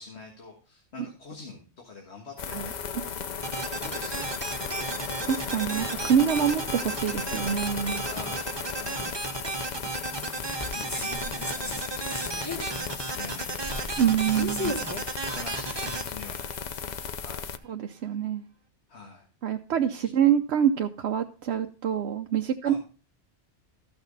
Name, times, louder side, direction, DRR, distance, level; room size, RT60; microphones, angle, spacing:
voice 1, 0.0-4.8 8.0-9.2 10.7-14.8 15.3-17.5 18.9-19.3 20.0-20.1 22.6-22.8, left 3 dB, 70° left, 1 dB, 1.8 m, -46 dB
sound 1, 2.4-17.6, left 7 dB, 50° left, 0.6 m, -36 dB
sound 2, 3.2-16.3, left 1 dB, 15° left, 1.2 m, -40 dB
sound 3, 3.4-17.1, right 3 dB, 25° right, 0.8 m, -35 dB
voice 2, 5.2-8.0 14.0-14.8 17.7-18.5 19.4-22.7, right 9 dB, 70° right, 5 dB, 0.9 m, -26 dB
14.0 x 6.2 x 3.9 m, 0.38 s
omnidirectional pair, 1.2 m